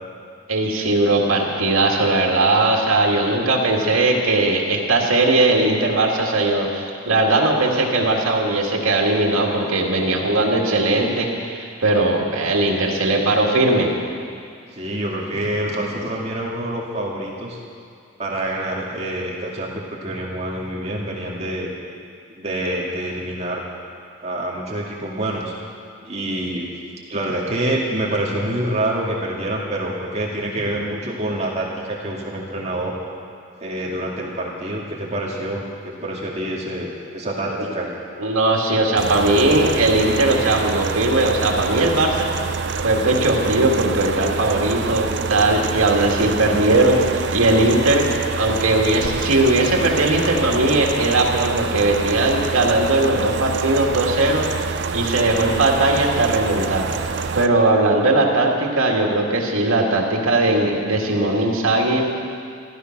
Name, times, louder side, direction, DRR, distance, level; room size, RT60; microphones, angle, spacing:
voice 1, 0.5-13.9 38.2-42.3 42.8-48.1 48.4-54.5 54.9-62.1, right 2 dB, 90° right, 0 dB, 2.1 m, -19 dB
voice 2, 14.7-17.6 18.2-21.7 22.4-23.6 24.2-25.5 26.0-26.7 27.1-33.0 33.6-35.6 36.0-37.9 42.0-42.1, right 1 dB, 30° right, -4 dB, 2.2 m, -26 dB
sound 1, 39.0-57.5, right 5 dB, 55° right, 0.5 m, -26 dB
13.5 x 13.0 x 6.0 m, 2.4 s
head